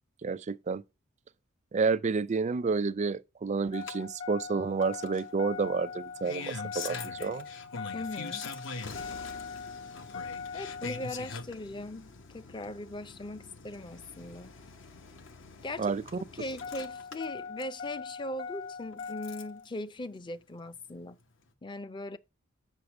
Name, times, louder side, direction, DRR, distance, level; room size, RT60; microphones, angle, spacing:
voice 1, 0.2-0.8 1.7-7.5 15.8-16.0, right 4 dB, 35° right, 0.4 m, -30 dB
Engine starting, 3.7-19.6 20.9-21.0, left 5 dB, 65° left, 0.9 m, -41 dB
voice 2, 7.9-8.5 10.5-14.5 15.6-15.9 16.3-21.2 21.6-22.2, left 1 dB, 25° left, 0.5 m, -39 dB
6.5 x 5.5 x 7.1 m
head